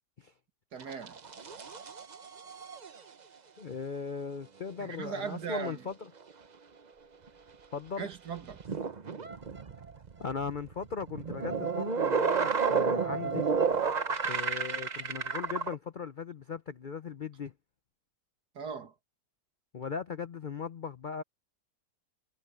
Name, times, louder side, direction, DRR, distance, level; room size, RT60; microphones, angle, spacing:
voice 1, 0.7-1.2 4.8-5.8 8.0-8.6 18.5-18.9, right 6 dB, 70° right, 2.4 m, -38 dB
sound 1, 0.8-3.0 7.3-7.4 8.4-15.7, right 5 dB, 35° right, 0.7 m, -31 dB
voice 2, 3.6-5.9 7.7-8.1 10.2-13.5 13.9-17.5 19.7-21.2, left 6 dB, 55° left, 0.5 m, -38 dB
omnidirectional pair, 1.8 m